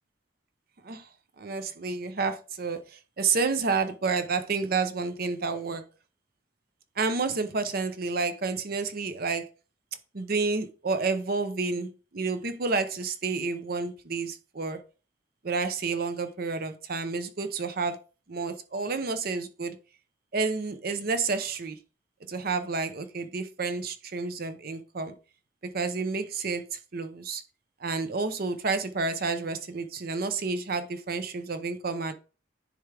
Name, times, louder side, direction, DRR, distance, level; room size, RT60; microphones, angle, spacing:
voice 1, 1.4-5.8 7.0-9.5 10.1-14.8 15.4-18.0 18.3-19.8 20.3-21.8 22.3-25.1 25.7-27.4 27.8-32.1, right 4 dB, 50° right, 0.7 m, -30 dB
10.0 x 3.5 x 3.3 m
head